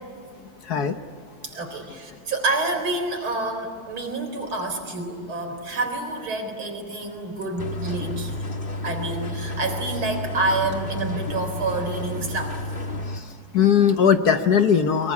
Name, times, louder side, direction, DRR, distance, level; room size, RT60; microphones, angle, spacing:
voice 1, 0.6-1.0 13.1-15.1, left 7 dB, 55° left, 8 dB, 1.3 m, -19 dB
voice 2, 1.4-8.5 8.8-12.8, right 2 dB, 80° right, 5 dB, 4.8 m, -28 dB
sound 1, 7.6-13.2, left 1 dB, 30° left, 1.4 m, -31 dB
23.5 x 23.0 x 9.6 m, 2.2 s
omnidirectional pair, 2.3 m